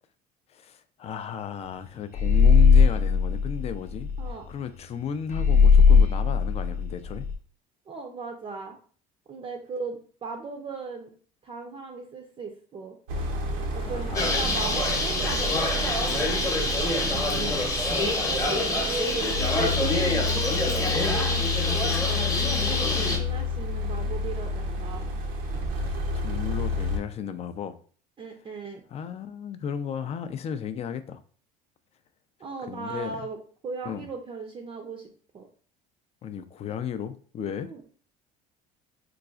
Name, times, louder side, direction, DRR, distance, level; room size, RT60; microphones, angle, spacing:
voice 1, 0.5-4.1 4.5-7.3 13.8-14.6 16.9-17.7 18.5-18.6 25.8-27.8 28.9-31.2 32.6-33.3 33.8-34.1 36.2-37.7, left 8 dB, 35° left, 11 dB, 0.4 m, -35 dB
sound 1, 2.1-4.3 5.3-7.3, left 5 dB, 50° left, 0.8 m, -18 dB
voice 2, 7.9-8.8 9.3-11.1 11.4-13.0 13.7-16.2 18.2-25.1 28.2-28.8 32.4-33.4 33.6-35.1 35.3-35.5 37.6-37.8, right 4 dB, 30° right, 2 dB, 0.5 m, -37 dB
sound 2, 13.1-27.0, left 2 dB, 85° right, 0.7 m, -30 dB
Bird, 14.1-23.2, left 2 dB, 15° left, 0.8 m, -26 dB
3.9 x 2.4 x 2.3 m, 0.44 s
supercardioid pair, 95°, 18 cm